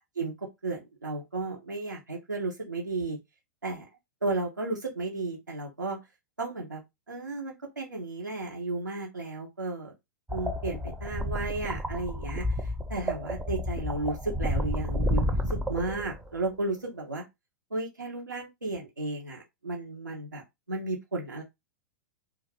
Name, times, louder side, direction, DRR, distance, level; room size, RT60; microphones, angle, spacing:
voice 1, 0.2-3.2 3.6-3.9 4.2-6.0 6.4-6.8 7.1-9.9 10.3-17.2 17.7-20.4 20.7-21.4, right 2 dB, 85° right, 0.7 m, -34 dB
sound 1, 10.3-16.4, left 1 dB, 10° right, 0.5 m, -31 dB
2.3 x 2.3 x 3.3 m
figure-of-eight pair, 100°, 10 cm